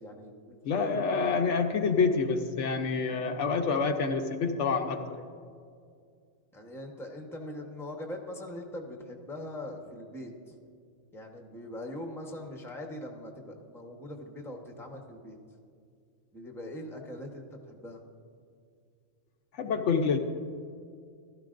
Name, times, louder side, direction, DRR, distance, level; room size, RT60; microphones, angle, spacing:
voice 1, 0.0-1.1 6.5-10.5 11.1-15.4 16.3-18.0, left 1 dB, ahead, 2 dB, 0.9 m, -42 dB
voice 2, 0.6-5.2 19.5-20.2, left 5 dB, 70° left, 5 dB, 1.0 m, -27 dB
15.5 x 13.0 x 2.5 m, 2.2 s
omnidirectional pair, 1.3 m